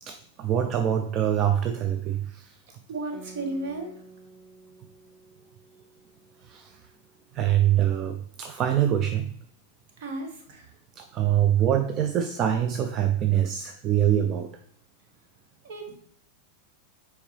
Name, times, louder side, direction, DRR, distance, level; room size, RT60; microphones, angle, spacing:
voice 1, 0.0-2.6 6.4-6.9 7.3-9.4 10.9-14.6, right 10 dB, 35° right, 0.4 m, -25 dB
voice 2, 2.9-3.9 10.0-10.7 15.6-16.0, right 2 dB, 50° right, 1.4 m, -34 dB
Guitar, 3.1-8.1, right 4 dB, 10° right, 1.2 m, -52 dB
7.1 x 4.7 x 3.2 m
figure-of-eight pair, 90°, 0 cm